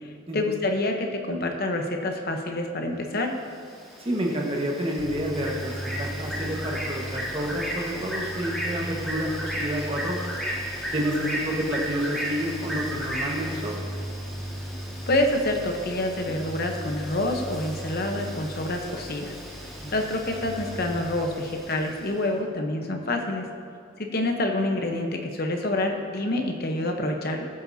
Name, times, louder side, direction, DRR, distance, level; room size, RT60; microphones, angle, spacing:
voice 1, 0.0-3.3 15.1-19.4 19.9-23.4 24.0-27.5, left 1 dB, 45° left, 3 dB, 0.9 m, -27 dB
Bird, 3.4-22.1, equal, ahead, 1.7 m, -36 dB
voice 2, 4.0-10.2 10.9-13.8 19.8-19.9, equal, 25° right, -1 dB, 1.4 m, -29 dB
sound 1, 5.0-21.0, equal, 20° left, 2.6 m, -38 dB
19.0 x 8.1 x 2.8 m, 2.3 s
head